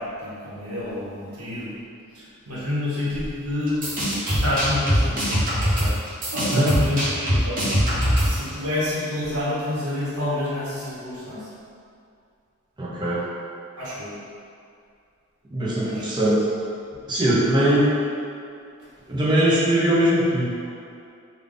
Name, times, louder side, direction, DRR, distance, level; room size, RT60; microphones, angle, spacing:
voice 1, 0.0-1.7 2.1-3.9 4.2-5.4 5.7-6.1 6.3-11.5 13.8-14.1 15.8-16.0, left 1 dB, 90° right, -8 dB, 1.1 m, -28 dB
sound 1, 3.7-8.5, equal, 40° right, 0.9 m, -22 dB
voice 2, 6.5-6.9 12.8-13.2 15.5-16.5 17.1-18.0 19.1-20.5, right 1 dB, 20° right, -7 dB, 0.5 m, -21 dB
3.4 x 2.3 x 3.7 m, 2.4 s
head